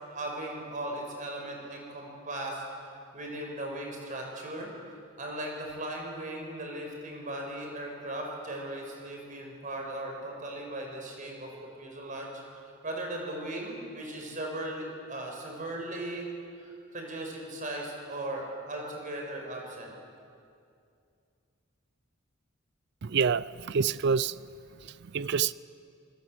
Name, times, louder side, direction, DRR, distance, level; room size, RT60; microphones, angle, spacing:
voice 1, 0.1-11.5 11.8-16.3 16.6-19.9, right 1 dB, 40° right, 5.5 m, -38 dB
voice 2, 23.0-24.3 25.1-25.5, right 6 dB, 55° right, 0.5 m, -27 dB
26.0 x 20.0 x 7.9 m
head